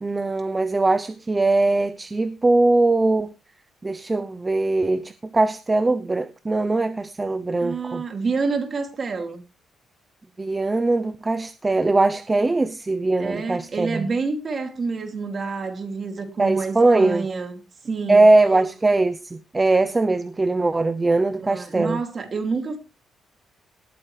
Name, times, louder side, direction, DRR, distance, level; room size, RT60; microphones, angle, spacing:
voice 1, 0.0-3.3 3.8-8.0 10.4-14.1 16.4-17.2 18.1-22.0, right 2 dB, 20° right, 0.6 m, -21 dB
voice 2, 7.6-9.4 13.2-18.2 21.5-22.8, right 4 dB, 35° right, 2.6 m, -28 dB
18.5 x 9.0 x 3.3 m
cardioid pair, 130°, 0 cm